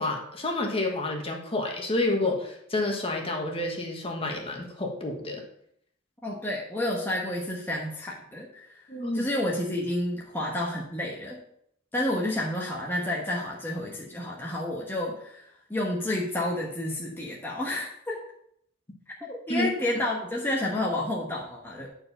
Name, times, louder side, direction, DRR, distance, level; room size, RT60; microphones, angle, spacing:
voice 1, 0.0-5.4 8.9-9.3 19.5-19.7, left 2 dB, 30° left, 1 dB, 1.4 m, -29 dB
voice 2, 6.2-8.6 9.1-11.4 11.9-18.2 19.2-21.9, left 1 dB, 10° left, -3 dB, 1.1 m, -30 dB
9.4 x 4.6 x 5.5 m, 0.69 s
head